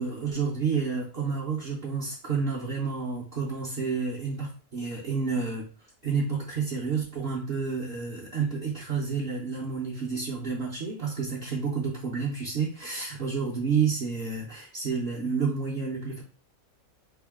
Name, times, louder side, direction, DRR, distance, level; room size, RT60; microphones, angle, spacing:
voice 1, 0.0-5.6 6.0-16.2, right 5 dB, 50° right, -5 dB, 0.9 m, -30 dB
3.6 x 2.3 x 3.5 m, 0.37 s
omnidirectional pair, 1.5 m